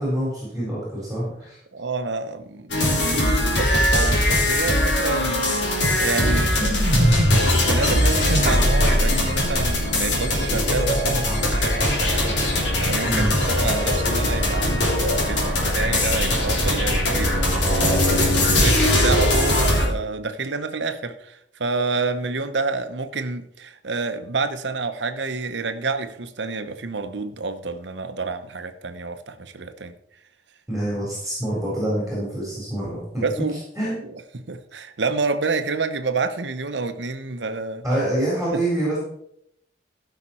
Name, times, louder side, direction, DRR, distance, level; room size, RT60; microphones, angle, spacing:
voice 1, 0.0-1.6 13.0-13.3 30.7-33.2 33.8-34.0 37.8-39.0, right 1 dB, ahead, 4.0 m, -26 dB
voice 2, 1.7-5.5 5.8-6.8 7.5-12.3 12.8-29.9 33.2-33.6 34.0-37.8 38.5-38.7, right 3 dB, 75° right, 0.9 m, -29 dB
sound 1, 2.7-19.9, left 1 dB, 80° left, 3.2 m, -20 dB
15.0 x 5.9 x 4.4 m
head